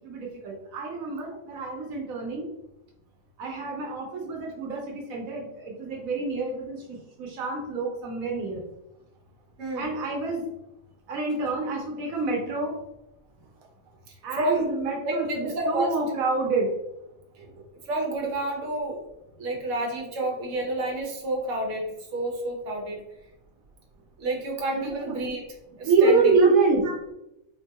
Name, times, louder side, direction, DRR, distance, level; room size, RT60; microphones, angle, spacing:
voice 1, 0.0-2.5 3.4-8.6 9.7-10.4 11.1-12.7 14.2-16.7 24.7-25.2 25.8-26.8, right 4 dB, 90° right, -1 dB, 1.2 m, -26 dB
voice 2, 9.6-9.9 14.4-14.6 15.0-15.9 17.9-19.0 19.4-21.8 22.1-23.0 24.2-25.4 25.8-26.5, right 1 dB, 70° right, 0 dB, 1.2 m, -29 dB
4.2 x 2.2 x 2.8 m, 0.87 s
omnidirectional pair, 1.4 m